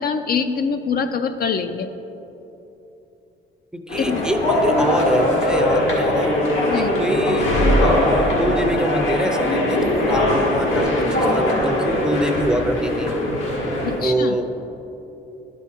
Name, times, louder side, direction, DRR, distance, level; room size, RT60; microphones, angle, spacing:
voice 1, 0.0-1.9 4.0-4.2 6.7-6.9 13.9-14.4, left 6 dB, 50° left, 8 dB, 0.4 m, -24 dB
voice 2, 3.7-6.4 6.7-7.5 7.7-13.1 14.0-14.6, equal, 5° right, 6 dB, 0.5 m, -25 dB
sound 1, 3.9-14.0, left 1 dB, 85° left, 1.7 m, -20 dB
11.0 x 4.8 x 4.3 m, 3.0 s
cardioid pair, 90°, 20 cm